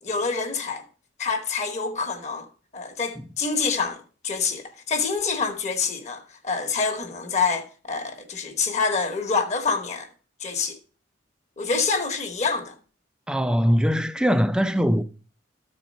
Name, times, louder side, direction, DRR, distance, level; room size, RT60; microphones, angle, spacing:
voice 1, 0.0-0.8 1.2-2.4 2.7-10.1 10.4-10.8 11.6-12.7, left 4 dB, 35° left, 1.1 m, -26 dB
voice 2, 13.3-15.0, equal, 5° right, 0.4 m, -21 dB
13.0 x 4.4 x 5.2 m
head